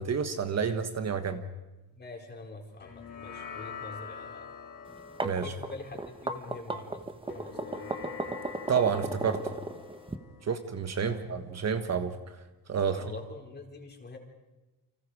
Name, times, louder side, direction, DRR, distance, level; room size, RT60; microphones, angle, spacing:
voice 1, 0.0-1.4 5.2-5.5 8.7-9.4 10.4-12.2 12.7-13.0, right 6 dB, 40° right, 7 dB, 1.5 m, -29 dB
voice 2, 1.9-4.4 5.3-7.9 11.0-11.2 12.9-14.2, left 3 dB, 25° left, 1 dB, 4.4 m, -45 dB
sound 1, 2.8-11.5, left 6 dB, 55° left, 4.2 m, -46 dB
sound 2, 4.9-10.2, right 2 dB, 15° right, 1.4 m, -35 dB
29.5 x 25.0 x 4.9 m, 1.1 s
cardioid pair, 120°, 39 cm